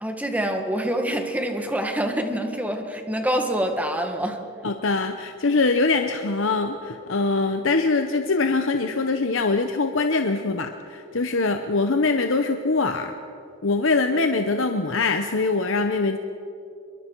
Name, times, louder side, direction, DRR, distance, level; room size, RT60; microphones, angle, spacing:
voice 1, 0.0-4.4, right 1 dB, 5° right, 4 dB, 1.6 m, -26 dB
voice 2, 4.6-13.1 13.6-16.2, left 3 dB, 65° left, 6 dB, 0.9 m, -23 dB
27.0 x 22.5 x 4.6 m, 2.6 s
head